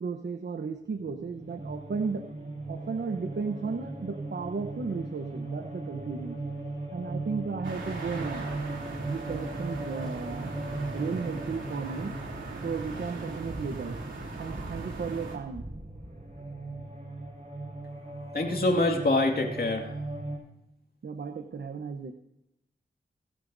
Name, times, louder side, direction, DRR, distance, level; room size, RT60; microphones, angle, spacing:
voice 1, 0.0-2.3 2.7-6.4 6.9-8.5 9.1-10.6 10.9-12.2 12.6-14.0 14.4-15.7 21.0-22.1, right 5 dB, 65° right, 6 dB, 0.9 m, -34 dB
sound 1, 1.0-20.4, right 2 dB, 40° right, 6.0 m, -39 dB
sound 2, 7.6-15.4, right 3 dB, 90° right, 3.0 m, -39 dB
voice 2, 18.3-19.9, left 2 dB, 55° left, 2 dB, 2.2 m, -25 dB
26.0 x 11.0 x 2.7 m, 0.85 s
wide cardioid pair, 75°, 19 cm